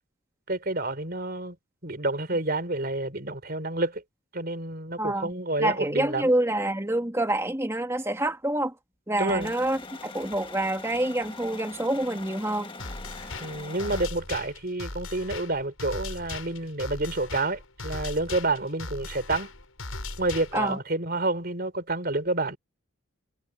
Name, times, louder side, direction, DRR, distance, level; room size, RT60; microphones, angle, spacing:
voice 1, 0.5-1.6 1.8-4.0 4.3-6.3 9.2-9.5 13.4-19.5 20.2-22.6, right 2 dB, 45° right, 3.7 m, -29 dB
voice 2, 5.0-8.7 9.1-12.7 20.5-20.8, right 1 dB, 15° right, 2.6 m, -27 dB
sound 1, 9.3-14.1, left 3 dB, 25° left, 1.6 m, -42 dB
sound 2, 12.8-20.8, left 3 dB, 80° left, 6.8 m, -38 dB
head